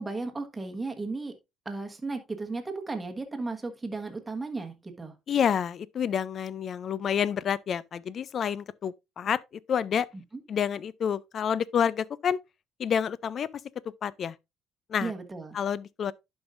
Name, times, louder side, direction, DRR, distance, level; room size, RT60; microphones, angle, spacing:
voice 1, 0.0-1.3 1.6-5.1 15.0-15.6, right 3 dB, 15° right, 1.3 m, -35 dB
voice 2, 5.3-9.4 9.7-10.1 10.5-12.4 12.8-13.6 14.0-14.4 14.9-15.1 15.5-16.1, left 8 dB, 45° left, 0.4 m, -28 dB
11.0 x 5.4 x 2.5 m
cardioid pair, 125°, 0 cm